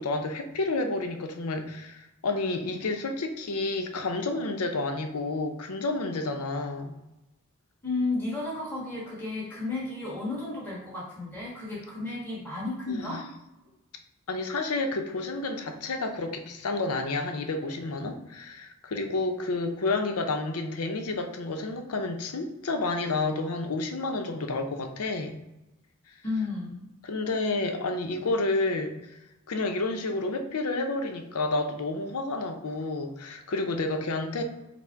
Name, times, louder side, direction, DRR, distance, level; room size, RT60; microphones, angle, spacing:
voice 1, 0.0-6.9 12.9-13.2 14.3-25.4 27.0-29.2 29.5-34.4, left 2 dB, 85° left, 5 dB, 0.6 m, -30 dB
voice 2, 7.8-13.2 26.2-26.8, left 3 dB, 10° left, -8 dB, 1.3 m, -32 dB
5.8 x 2.0 x 4.4 m, 0.94 s
head